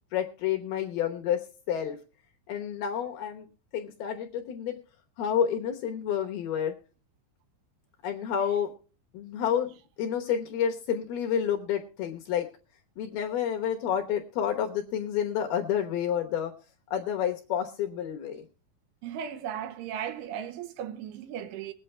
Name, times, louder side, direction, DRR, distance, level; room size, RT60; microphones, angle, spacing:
voice 1, 0.1-1.4 1.7-2.0 2.5-3.5 3.7-4.8 5.2-6.8 8.0-8.7 9.1-9.7 10.0-12.5 13.0-16.5 16.9-18.4, left 9 dB, 70° left, 2.6 m, -29 dB
voice 2, 19.0-21.7, right 9 dB, 80° right, 3.5 m, -36 dB
21.5 x 8.8 x 3.3 m
omnidirectional pair, 5.5 m